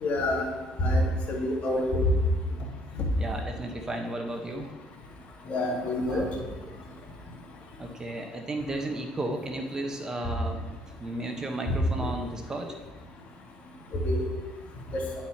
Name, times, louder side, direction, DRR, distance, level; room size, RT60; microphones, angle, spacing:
voice 1, 0.0-0.5 0.8-2.0 3.0-3.1 5.5-6.3 14.0-14.2 14.9-15.0, left 1 dB, 55° left, 0 dB, 1.7 m, -27 dB
voice 2, 3.2-4.7 5.4-5.5 6.1-6.2 6.7-6.8 7.8-10.6 11.0-12.7, right 1 dB, 20° right, 4 dB, 1.0 m, -34 dB
10.0 x 4.3 x 4.4 m, 1.2 s
supercardioid pair, 95°, 3 cm